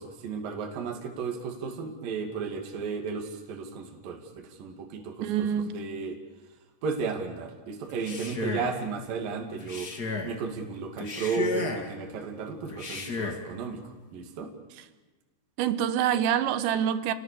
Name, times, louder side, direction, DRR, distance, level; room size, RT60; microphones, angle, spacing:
voice 1, 0.0-6.2 6.8-9.9 10.2-14.5, right 5 dB, 50° right, 2 dB, 3.7 m, -34 dB
voice 2, 5.2-5.7 15.6-17.1, right 9 dB, 75° right, 11 dB, 3.1 m, -26 dB
Male speech man speaking, 7.9-8.8 9.6-10.4 11.0-11.9 12.7-13.5, left 3 dB, 65° left, 0.9 m, -33 dB
30.0 x 19.0 x 6.9 m, 1.2 s
omnidirectional pair, 5.7 m